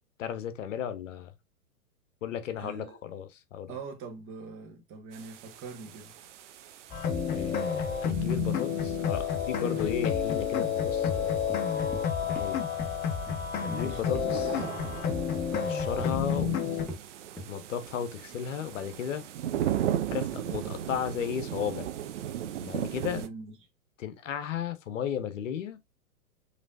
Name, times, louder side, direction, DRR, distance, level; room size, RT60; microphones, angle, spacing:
voice 1, 0.2-1.3 2.2-3.7 7.3-11.3 12.2-12.6 13.6-14.6 15.5-16.6 17.5-19.2 20.1-21.9 22.6-23.2 24.0-25.8, left 9 dB, 60° left, 0.9 m, -34 dB
voice 2, 2.6-3.0 3.7-6.1 13.7-14.4 23.0-23.5, right 4 dB, 30° right, 1.5 m, -43 dB
sound 1, 5.1-23.3, right 11 dB, 55° right, 0.8 m, -38 dB
sound 2, 6.9-16.9, left 7 dB, 20° left, 0.7 m, -30 dB
sound 3, 11.1-11.2 11.5-12.0 12.4-12.5 12.8-12.9 13.3-13.4 13.7-13.8 14.1-14.3 14.6-14.8 15.1-15.7 16.0-16.1 16.4-16.6 16.9-17.0 17.4-17.5, equal, 5° left, 1.0 m, -41 dB
5.2 x 3.3 x 2.6 m
figure-of-eight pair, 110°, 44 cm